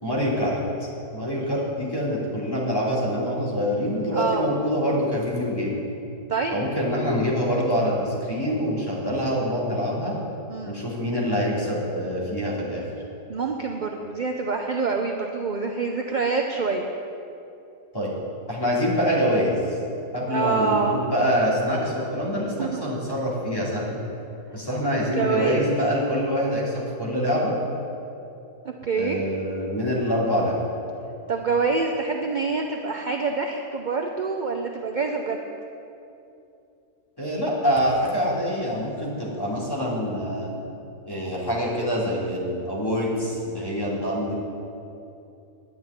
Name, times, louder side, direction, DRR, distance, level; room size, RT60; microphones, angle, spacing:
voice 1, 0.0-0.6 1.1-5.8 6.5-10.2 10.7-12.8 17.9-18.1 18.5-19.5 20.1-24.0 24.5-27.5 29.0-30.6 37.2-40.5 41.1-44.3, equal, 15° left, -6 dB, 2.8 m, -25 dB
voice 2, 4.1-4.5 6.3-6.6 10.5-10.8 13.3-16.9 20.3-21.0 22.6-22.8 25.2-25.7 28.6-29.2 31.3-35.4, right 4 dB, 50° right, 2 dB, 0.5 m, -26 dB
10.5 x 7.2 x 9.5 m, 2.8 s
omnidirectional pair, 1.6 m